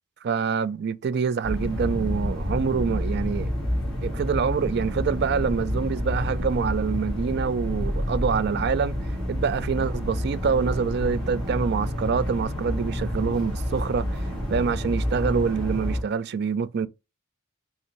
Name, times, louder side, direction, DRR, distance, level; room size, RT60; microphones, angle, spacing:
voice 1, 0.2-3.5 4.0-8.9 9.3-16.9, right 6 dB, 50° right, 0.3 m, -26 dB
sound 1, 1.4-16.0, left 1 dB, 5° left, 1.9 m, -29 dB
5.1 x 2.5 x 3.1 m
head